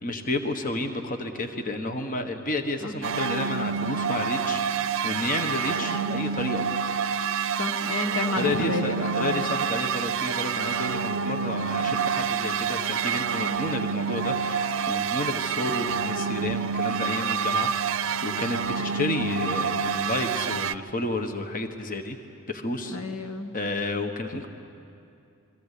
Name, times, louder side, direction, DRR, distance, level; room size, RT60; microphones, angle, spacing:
voice 1, 0.0-6.7 8.4-22.2 22.5-23.0 23.5-24.5, left 2 dB, 40° left, 6 dB, 1.3 m, -31 dB
sound 1, 3.0-20.7, right 6 dB, 60° right, 0.6 m, -28 dB
voice 2, 7.6-9.5 11.8-11.9 22.8-23.6, left 2 dB, 75° left, 7 dB, 1.5 m, -31 dB
28.0 x 23.0 x 8.4 m, 2.6 s
head